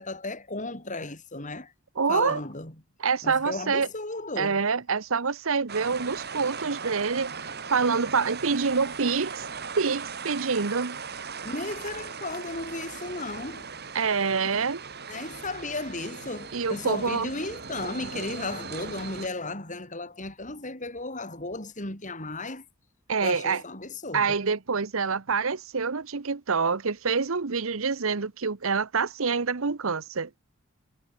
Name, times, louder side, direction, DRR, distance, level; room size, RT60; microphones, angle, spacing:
voice 1, 0.0-1.7 2.1-2.7 3.2-4.6 11.4-13.7 14.5-14.7 15.1-22.6 23.2-24.4, left 2 dB, 35° left, 7.8 m, -35 dB
voice 2, 2.0-2.4 3.0-3.9 4.4-9.5 9.7-11.0 13.9-14.8 16.5-17.3 23.1-23.6 24.1-30.3, right 5 dB, 70° right, 0.9 m, -26 dB
sound 1, 5.7-19.3, right 5 dB, 50° right, 5.6 m, -38 dB
head